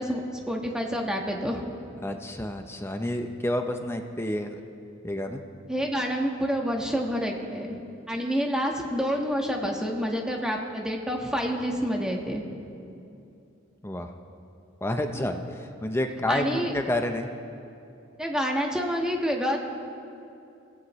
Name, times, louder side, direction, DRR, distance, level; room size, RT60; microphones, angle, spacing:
voice 1, 0.0-1.6 5.7-7.8 8.1-12.4 15.1-15.3 16.3-16.7 18.2-19.6, equal, 5° right, 0 dB, 1.4 m, -28 dB
voice 2, 2.0-4.6 5.0-5.4 13.8-14.1 14.8-17.3, left 1 dB, 10° left, 5 dB, 0.7 m, -29 dB
26.5 x 16.0 x 3.2 m, 2.7 s
head